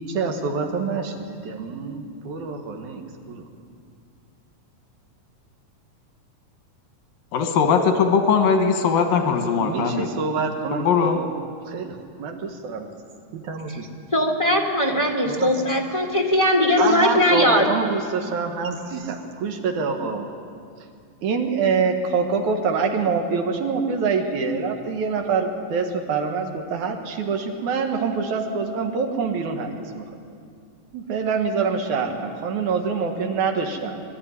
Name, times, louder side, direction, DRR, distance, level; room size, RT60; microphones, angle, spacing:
voice 1, 0.0-3.4 9.5-11.4 11.7-12.9 13.3-13.9 15.3-15.5 16.7-20.3 21.2-30.0 30.9-34.0, right 5 dB, 65° right, 3 dB, 2.8 m, -26 dB
voice 2, 7.3-10.1 10.7-11.2, left 6 dB, 85° left, 4 dB, 3.1 m, -20 dB
voice 3, 14.1-17.7, left 1 dB, 30° left, 1 dB, 0.5 m, -20 dB
22.5 x 12.5 x 9.8 m, 2.3 s
omnidirectional pair, 3.9 m